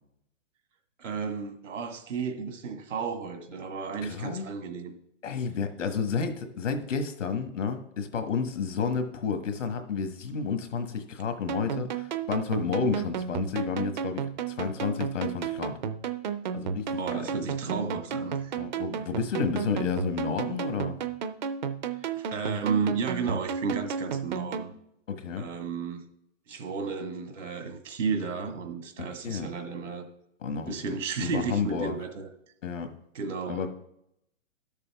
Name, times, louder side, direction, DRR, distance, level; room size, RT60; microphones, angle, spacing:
voice 1, 1.0-4.9 16.9-18.5 22.0-24.7 25.4-26.1 26.5-30.1 30.7-32.3 33.1-33.6, right 5 dB, 80° right, 1.8 m, -33 dB
voice 2, 4.0-4.5 5.2-15.8 16.5-16.9 17.1-17.3 18.6-21.0 25.1-25.5 29.0-29.5 30.4-30.9 31.2-31.9 32.6-32.9 33.5-33.7, left 5 dB, 80° left, 1.5 m, -31 dB
sound 1, 11.5-24.7, right 6 dB, 40° right, 0.5 m, -33 dB
12.0 x 6.8 x 3.5 m
hypercardioid pair, 165°, 37 cm